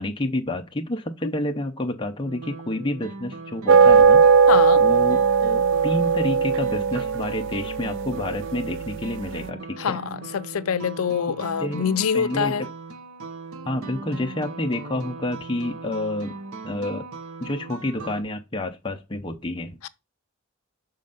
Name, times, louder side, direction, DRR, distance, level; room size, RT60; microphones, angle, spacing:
voice 1, 0.0-4.3 4.8-10.0 11.6-11.8 12.1-12.5 13.7-16.3 16.6-17.1 17.4-19.8, left 1 dB, 25° left, 0.6 m, -29 dB
sound 1, 2.2-18.2, right 3 dB, 80° right, 0.8 m, -39 dB
sound 2, 3.7-9.2, right 5 dB, 60° right, 0.3 m, -18 dB
voice 2, 4.5-4.8 9.8-12.7 19.8-19.9, left 7 dB, 85° left, 0.5 m, -25 dB
6.4 x 4.3 x 3.9 m
head